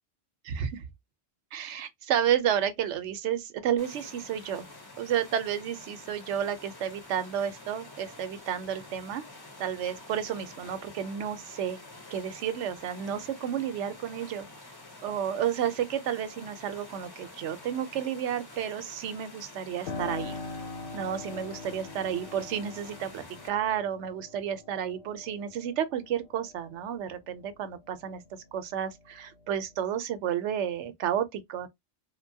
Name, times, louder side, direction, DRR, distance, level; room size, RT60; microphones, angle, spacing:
voice 1, 1.5-4.6 5.0-9.2 9.6-11.8 12.1-14.5 15.0-20.4 20.9-28.2 28.5-31.7, right 9 dB, 85° right, 0.9 m, -31 dB
sound 1, 3.8-23.5, left 2 dB, 25° left, 0.6 m, -48 dB
Piano, 19.9-28.3 28.7-29.7, left 4 dB, 60° left, 0.7 m, -43 dB
2.8 x 2.2 x 2.6 m
omnidirectional pair, 1.2 m